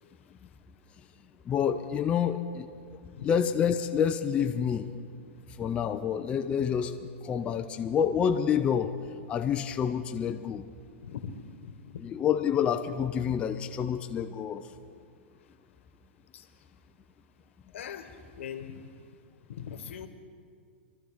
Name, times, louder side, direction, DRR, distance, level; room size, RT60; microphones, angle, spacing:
voice 1, 1.5-2.7 3.2-4.9 5.6-8.9 9.3-10.7 12.0-14.7, left 8 dB, 15° left, 5 dB, 0.4 m, -28 dB
voice 2, 11.0-11.3 11.6-12.0 16.3-16.4 17.7-18.8 19.5-20.1, left 8 dB, 75° left, 8 dB, 1.2 m, -41 dB
24.0 x 13.0 x 3.6 m, 2.1 s
hypercardioid pair, 150°, 7 cm